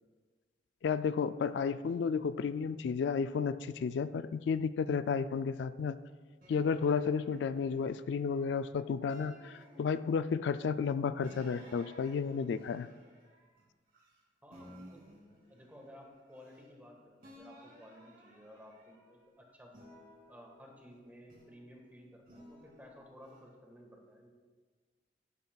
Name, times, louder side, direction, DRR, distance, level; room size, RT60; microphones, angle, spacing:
voice 1, 0.8-6.0 6.5-12.9, left 6 dB, 80° left, 13 dB, 0.3 m, -32 dB
sound 1, 6.4-8.5 9.1-10.4 11.2-14.2 14.5-16.9 17.2-19.2 19.7-21.7 22.3-23.4, equal, 55° right, 2.8 m, -57 dB
voice 2, 14.4-15.0 15.5-19.7 20.3-24.3, equal, 10° right, 1 dB, 1.5 m, -55 dB
11.5 x 11.0 x 2.3 m, 1.4 s
head